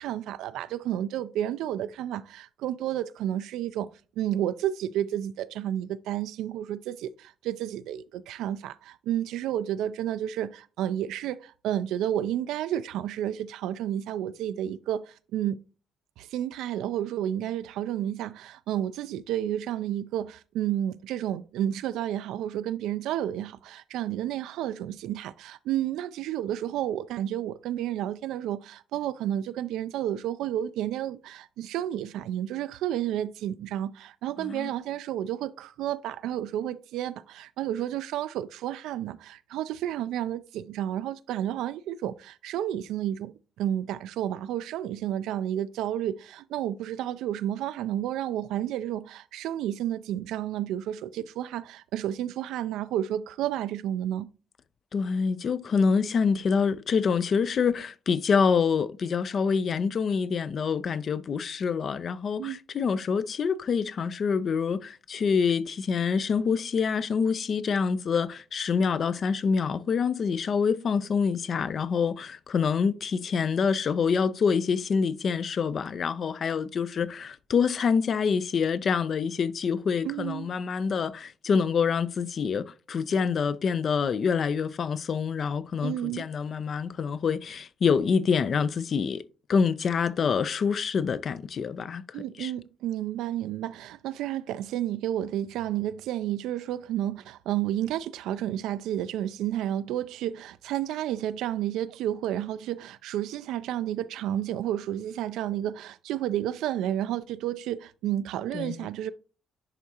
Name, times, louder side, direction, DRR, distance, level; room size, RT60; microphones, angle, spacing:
voice 1, 0.0-3.9 4.2-15.6 16.2-43.3 43.6-54.3 62.4-62.6 80.0-80.5 85.8-86.3 92.1-109.1, right 11 dB, 90° right, 0.3 m, -31 dB
voice 2, 34.4-34.7 54.9-89.2 89.5-92.0 92.4-92.5 108.5-108.9, left 6 dB, 55° left, 0.4 m, -26 dB
10.5 x 3.6 x 2.8 m
cardioid pair, 90°, 0 cm